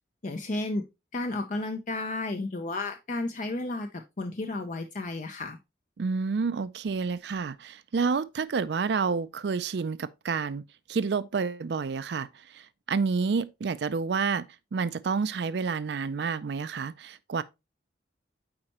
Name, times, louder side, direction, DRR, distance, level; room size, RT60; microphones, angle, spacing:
voice 1, 0.2-0.8 1.1-5.6, left 2 dB, 45° left, 0.5 m, -32 dB
voice 2, 6.0-10.6 10.9-14.5 14.7-17.4, right 5 dB, 65° right, 0.4 m, -29 dB
8.7 x 4.4 x 3.0 m
head